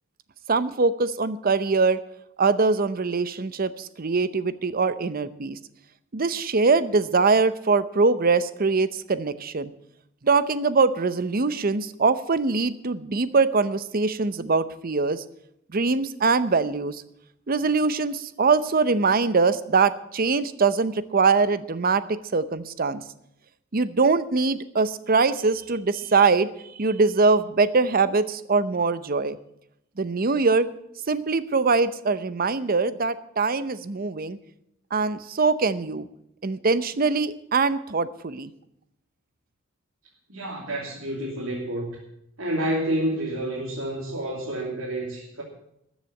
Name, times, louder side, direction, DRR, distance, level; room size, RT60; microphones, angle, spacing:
voice 1, 0.5-2.0 2.4-5.6 6.1-9.7 10.2-15.2 15.7-17.0 17.5-23.0 23.7-26.5 26.8-29.4 30.0-30.7 31.1-34.4 34.9-36.1 36.4-38.5, right 4 dB, 45° right, 14 dB, 0.7 m, -23 dB
voice 2, 40.3-42.0 42.4-45.4, right 1 dB, 85° right, -3 dB, 2.9 m, -29 dB
13.5 x 7.3 x 9.5 m, 0.79 s
head